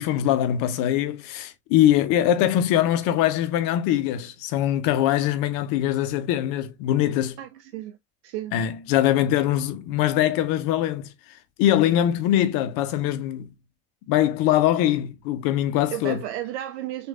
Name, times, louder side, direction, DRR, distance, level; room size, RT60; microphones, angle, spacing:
voice 1, 0.0-7.4 8.5-11.1 11.6-13.5 14.1-16.2, left 12 dB, 45° left, 0.8 m, -22 dB
voice 2, 7.4-8.0 8.2-8.6 15.9-17.1, right 13 dB, 50° right, 0.5 m, -33 dB
6.1 x 2.6 x 2.3 m
figure-of-eight pair, 70°, 47 cm